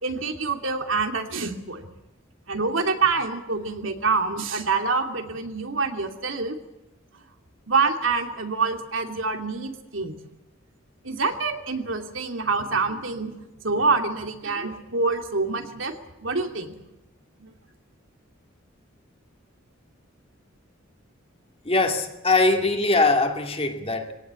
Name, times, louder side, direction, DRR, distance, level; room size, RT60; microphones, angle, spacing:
voice 1, 0.0-1.9 2.5-6.6 7.7-10.1 11.0-13.3 13.6-16.0 16.2-16.7 17.4-17.5, right 4 dB, 75° right, 2.7 m, -26 dB
voice 2, 21.6-24.1, left 3 dB, 30° left, 2.6 m, -22 dB
23.0 x 17.5 x 8.3 m
head